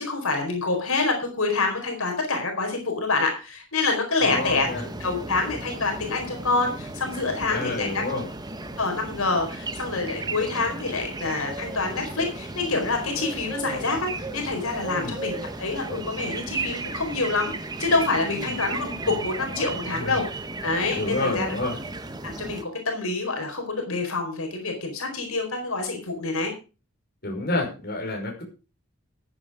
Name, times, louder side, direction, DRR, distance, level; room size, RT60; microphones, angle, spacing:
voice 1, 0.0-4.7 5.0-8.0 8.8-17.5 17.8-20.2 20.6-21.5 22.2-26.5, left 3 dB, 80° left, 3 dB, 4.6 m, -26 dB
voice 2, 4.2-4.8 7.5-8.2 14.9-15.1 18.3-18.6 19.9-20.2 21.0-21.8 27.2-28.4, left 2 dB, 45° left, 1 dB, 5.6 m, -29 dB
sound 1, 4.3-22.6, right 2 dB, 20° right, 1.1 m, -35 dB
14.5 x 9.3 x 5.0 m, 0.33 s
head